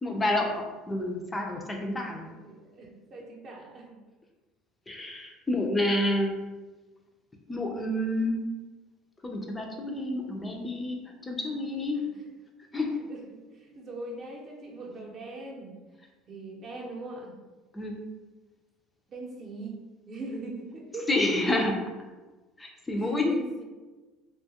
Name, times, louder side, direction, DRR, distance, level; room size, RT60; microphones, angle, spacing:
voice 1, 0.0-2.3 4.9-6.3 7.5-8.4 9.2-12.0 12.7-12.9 17.7-17.9 21.1-21.8 22.6-23.3, left 1 dB, 15° left, 1 dB, 0.4 m, -29 dB
voice 2, 2.2-3.9 5.5-5.6 12.0-12.3 13.1-15.7 16.3-17.3 19.1-19.8 20.1-21.1 23.0-23.6, right 2 dB, 40° right, -1 dB, 0.7 m, -41 dB
2.8 x 2.2 x 2.8 m, 1.2 s
cardioid pair, 120°, 0 cm